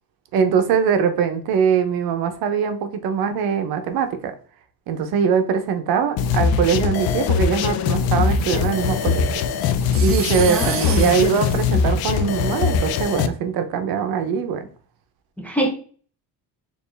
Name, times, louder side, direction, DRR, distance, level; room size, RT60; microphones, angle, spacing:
voice 1, 0.3-4.3 4.9-9.3 10.0-14.7, right 7 dB, 75° right, 8 dB, 0.8 m, -22 dB
sound 1, 6.2-13.3, left 6 dB, 70° left, 0.5 m, -21 dB
sound 2, 8.2-12.6, right 7 dB, 35° right, 0.6 m, -33 dB
voice 2, 10.5-11.1 15.4-15.7, right 1 dB, 5° left, 0 dB, 0.5 m, -24 dB
4.5 x 2.6 x 3.3 m, 0.42 s
cardioid pair, 160°, 37 cm